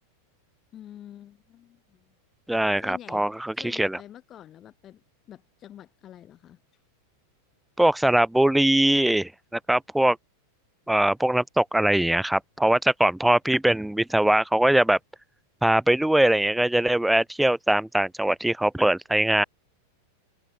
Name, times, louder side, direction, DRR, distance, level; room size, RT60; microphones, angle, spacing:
voice 1, 0.7-2.1 2.8-3.3 3.6-5.0 5.3-6.6, left 11 dB, 30° left, 6.3 m, -46 dB
voice 2, 2.5-4.0 7.8-10.2 10.9-15.0 15.6-19.4, right 1 dB, 5° right, 0.6 m, -22 dB
open air
figure-of-eight pair, 90°, 0 cm